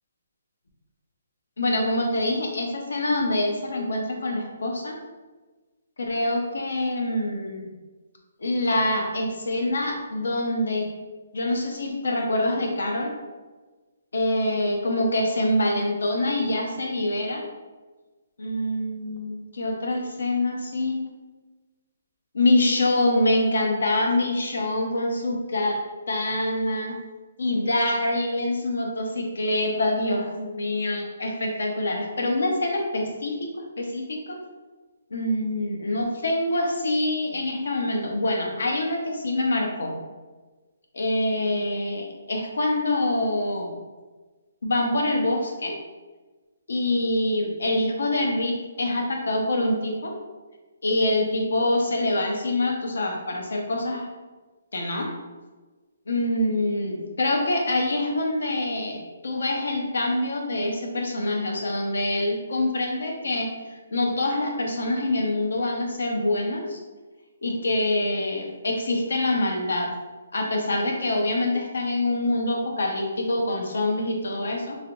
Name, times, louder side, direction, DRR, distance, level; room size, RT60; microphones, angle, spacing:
voice 1, 1.6-4.9 6.0-7.7 8.4-10.9 11.3-13.1 14.1-17.4 18.4-21.0 22.3-25.8 26.1-26.9 27.4-34.4 35.1-39.9 40.9-43.7 44.6-45.8 46.7-50.1 50.8-54.1 54.7-55.1 56.1-63.5 63.9-66.8 67.4-69.9 70.3-74.8, left 1 dB, 80° left, 1 dB, 0.7 m, -25 dB
3.3 x 2.8 x 2.5 m, 1.3 s
hypercardioid pair, 165°, 0 cm